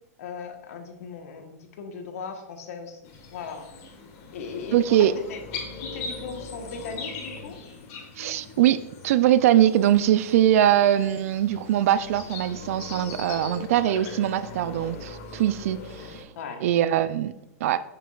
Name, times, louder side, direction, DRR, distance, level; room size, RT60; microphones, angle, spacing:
voice 1, 0.2-3.7 4.3-5.4 5.8-7.6 16.4-16.7, left 5 dB, 65° left, 5 dB, 1.1 m, -38 dB
sound 1, 3.0-16.2, left 4 dB, 45° left, 1.4 m, -40 dB
voice 2, 4.7-5.1 8.2-8.8 9.0-16.2 16.6-17.3 17.6-17.8, right 11 dB, 65° right, 14 dB, 0.4 m, -22 dB
6.9 x 5.9 x 2.4 m, 0.90 s
hypercardioid pair, 110°, 8 cm